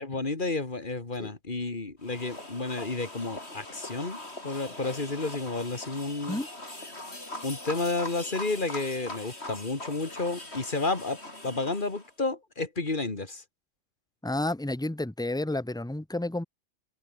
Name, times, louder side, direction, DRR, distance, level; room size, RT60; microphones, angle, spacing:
voice 1, 0.0-4.2 4.4-6.4 7.4-11.2 11.4-13.4, left 3 dB, 40° left, 2.8 m, -31 dB
sound 1, 2.0-12.1, left 1 dB, 60° left, 6.5 m, -41 dB
voice 2, 14.2-16.4, left 1 dB, 5° left, 1.0 m, -31 dB
omnidirectional pair, 1.2 m